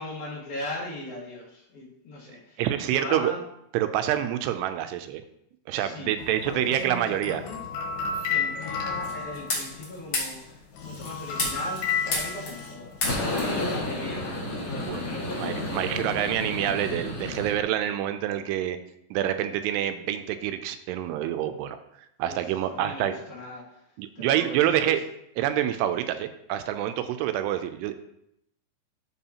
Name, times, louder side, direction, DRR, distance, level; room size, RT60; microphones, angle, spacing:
voice 1, 0.0-3.4 5.7-6.1 6.4-7.6 8.3-15.7 22.2-23.8 24.2-25.0, left 1 dB, 65° left, -4 dB, 3.5 m, -39 dB
voice 2, 2.6-3.3 3.7-5.2 5.7-7.4 14.9-15.0 15.3-18.8 19.1-21.8 22.2-23.2 24.0-25.0 25.4-28.0, right 11 dB, 85° right, 9 dB, 2.7 m, -27 dB
sound 1, 6.2-10.2 10.6-13.0, left 5 dB, 85° left, 3.5 m, -32 dB
sound 2, 9.0-9.8 10.1-10.4 10.8-12.7 13.0-17.6, left 2 dB, 45° left, 2.0 m, -31 dB
12.5 x 4.7 x 2.9 m, 0.78 s
omnidirectional pair, 4.8 m